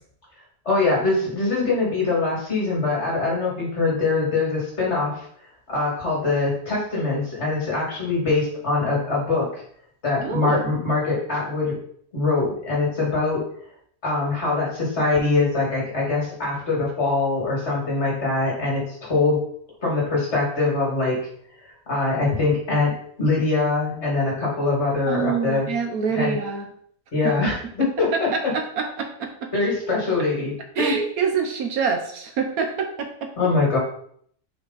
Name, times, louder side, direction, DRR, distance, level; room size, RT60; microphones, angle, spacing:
voice 1, 0.7-5.3 5.7-9.6 10.0-11.8 12.1-13.4 14.0-19.4 19.8-21.3 21.9-25.7 26.1-26.4 27.1-28.5 29.5-31.0 33.4-33.8, left 3 dB, 45° left, -3 dB, 2.5 m, -23 dB
voice 2, 10.2-10.6 25.1-26.7 27.2-29.5 30.8-33.3, right 6 dB, 70° right, 4 dB, 1.2 m, -26 dB
5.5 x 4.4 x 3.9 m, 0.62 s
omnidirectional pair, 1.7 m